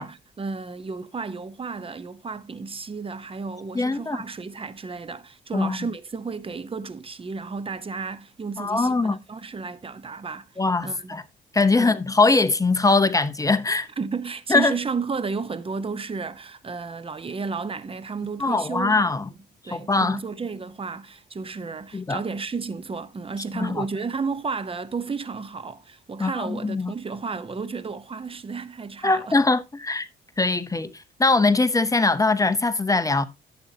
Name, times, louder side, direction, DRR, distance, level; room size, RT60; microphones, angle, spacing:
voice 1, 0.0-10.5 10.8-11.2 11.7-12.0 14.0-19.1 19.6-29.3, right 4 dB, 25° right, 0.9 m, -32 dB
voice 2, 3.7-4.2 5.5-5.8 8.6-9.2 10.6-11.2 11.5-13.9 14.5-14.7 18.4-19.3 19.7-20.2 21.9-22.2 23.5-23.8 26.2-26.9 29.0-30.1 30.4-33.3, left 3 dB, 15° left, 0.8 m, -22 dB
11.5 x 7.8 x 2.8 m
cardioid pair, 90°, 20 cm